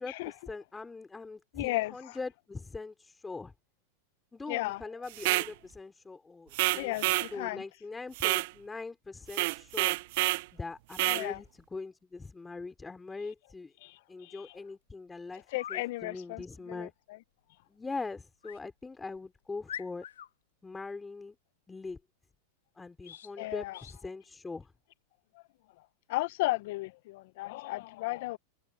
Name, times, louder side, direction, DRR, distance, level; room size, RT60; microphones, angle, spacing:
voice 1, 0.0-3.5 4.3-10.0 10.5-13.7 14.1-16.9 17.7-20.1 20.6-21.4 21.7-22.0 22.8-24.7, left 3 dB, 10° left, 3.6 m, -42 dB
voice 2, 1.5-2.2 4.5-4.8 6.7-7.6 11.0-11.4 13.8-14.4 15.5-16.9 23.4-23.8 26.1-28.4, left 19 dB, 65° left, 0.6 m, -35 dB
sound 1, 5.1-5.5 6.5-7.3 8.2-8.5 9.3-10.4 10.9-11.3, right 21 dB, 60° right, 0.3 m, -28 dB
sound 2, 14.6-14.7 15.5-15.9 18.4-18.6 19.2-19.3 19.7-20.3 23.0-23.3 23.7-24.0, left 10 dB, 90° left, 1.4 m, -43 dB
hypercardioid pair, 120°, 0 cm